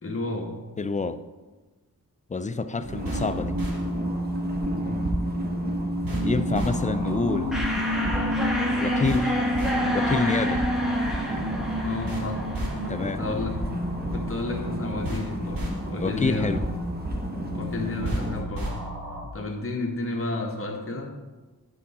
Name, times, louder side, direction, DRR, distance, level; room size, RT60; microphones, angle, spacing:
voice 1, 0.0-0.6 4.8-5.2 11.8-13.7 14.1-16.6 17.5-18.7 19.3-21.1, left 2 dB, 40° left, 1 dB, 1.3 m, -32 dB
voice 2, 0.8-1.2 2.3-3.6 6.2-7.6 8.8-9.3 9.9-10.6 12.9-13.2 16.0-16.6, left 3 dB, 20° left, 11 dB, 0.4 m, -27 dB
sound 1, 2.8-18.4, right 2 dB, 25° right, 1.2 m, -35 dB
sound 2, 2.9-19.2, equal, 70° right, 1.7 m, -29 dB
sound 3, 7.5-13.0, equal, ahead, 1.4 m, -31 dB
10.0 x 4.7 x 4.2 m, 1.2 s
wide cardioid pair, 65°, 35 cm